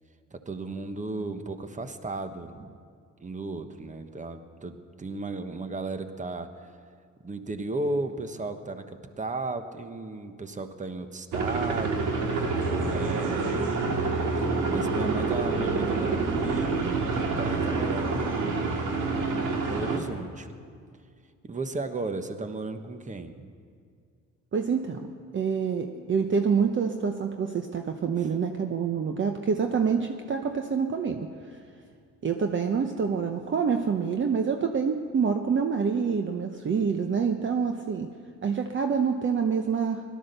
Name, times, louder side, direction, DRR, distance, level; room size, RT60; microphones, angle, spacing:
voice 1, 0.3-2.7 3.2-6.8 7.2-12.2 12.8-13.9 14.7-20.5 21.4-23.5 28.2-28.3, right 3 dB, 25° right, 8 dB, 1.1 m, -35 dB
sound 1, 11.3-20.0, right 3 dB, 80° right, 2.0 m, -27 dB
voice 2, 24.5-31.6 32.2-38.1 38.4-40.0, right 6 dB, 40° right, 5 dB, 0.9 m, -27 dB
17.0 x 12.5 x 6.7 m, 2.1 s
cardioid pair, 90°, 30 cm